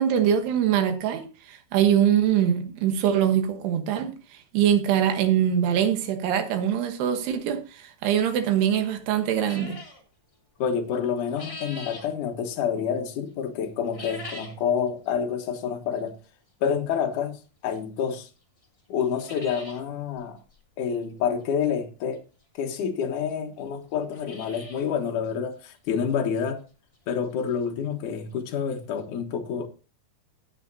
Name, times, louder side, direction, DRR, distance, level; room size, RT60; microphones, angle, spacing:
voice 1, 0.0-4.1 4.5-9.8, right 9 dB, 80° right, 3.3 m, -23 dB
sound 1, 9.4-10.0 11.0-12.1 13.8-14.6 15.0-15.1 16.0-16.1 17.7-17.8 18.3-18.4 18.6-18.7 19.0-19.8 20.2-20.3 20.5-20.6 22.1-22.2 23.0-23.1 23.3-23.4 23.9-24.9 25.3-25.4 25.9-26.0 26.4-26.5 28.2-28.3 28.5-28.6 29.0-29.1, left 1 dB, 20° left, 0.9 m, -41 dB
voice 2, 10.6-16.1 16.6-18.3 18.9-20.4 20.8-22.2 22.6-26.6 27.1-29.7, left 7 dB, 65° left, 2.3 m, -28 dB
16.5 x 7.3 x 2.7 m
omnidirectional pair, 4.7 m